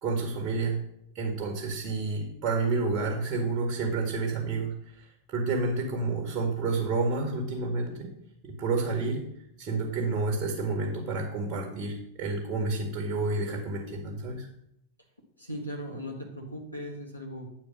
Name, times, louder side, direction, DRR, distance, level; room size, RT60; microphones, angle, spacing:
voice 1, 0.0-0.8 1.1-4.7 5.3-8.1 8.4-9.2 9.6-14.5, right 3 dB, 35° right, 1 dB, 1.9 m, -29 dB
voice 2, 15.4-17.5, equal, 85° left, -1 dB, 1.5 m, -38 dB
9.1 x 4.6 x 6.2 m, 0.76 s
figure-of-eight pair, 90°, 0 cm